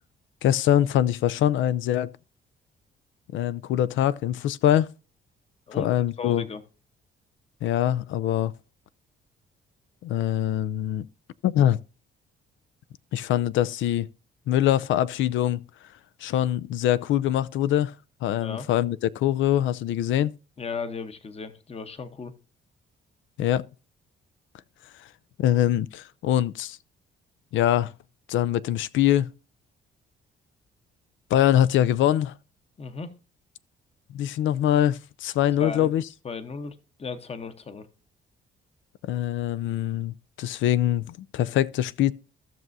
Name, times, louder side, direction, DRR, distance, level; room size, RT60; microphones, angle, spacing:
voice 1, 0.4-2.1 3.3-4.9 5.8-6.4 7.6-8.5 10.0-11.1 11.4-11.8 13.1-14.1 14.5-15.6 16.2-17.9 18.2-20.3 23.4-23.6 25.4-26.8 27.5-27.9 28.3-29.3 31.3-32.3 34.1-36.0 39.0-42.1, left 11 dB, 75° left, 0.4 m, -23 dB
voice 2, 6.2-6.6 18.4-18.7 20.6-22.3 32.8-33.1 35.6-37.9, left 5 dB, 30° left, 0.9 m, -35 dB
15.0 x 6.1 x 2.6 m
cardioid pair, 90°, 20 cm